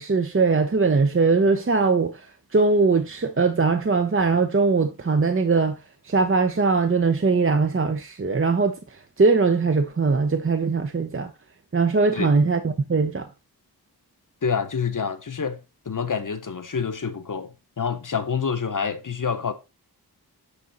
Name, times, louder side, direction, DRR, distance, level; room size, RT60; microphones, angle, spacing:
voice 1, 0.0-2.3 2.5-5.8 6.0-11.3 11.7-13.3, right 4 dB, 35° right, 0.8 m, -21 dB
voice 2, 14.4-19.5, left 6 dB, 55° left, 1.0 m, -27 dB
9.9 x 3.8 x 4.1 m
wide cardioid pair, 65°, 39 cm